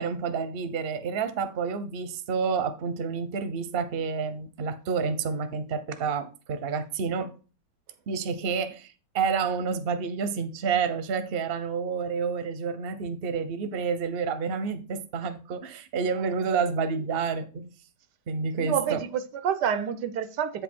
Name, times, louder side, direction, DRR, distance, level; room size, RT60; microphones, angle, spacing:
voice 1, 0.0-7.3 8.1-17.7 18.3-19.0, right 5 dB, 45° right, 0.9 m, -29 dB
voice 2, 18.5-20.6, right 8 dB, 75° right, 1.3 m, -28 dB
8.3 x 5.3 x 4.4 m
omnidirectional pair, 1.9 m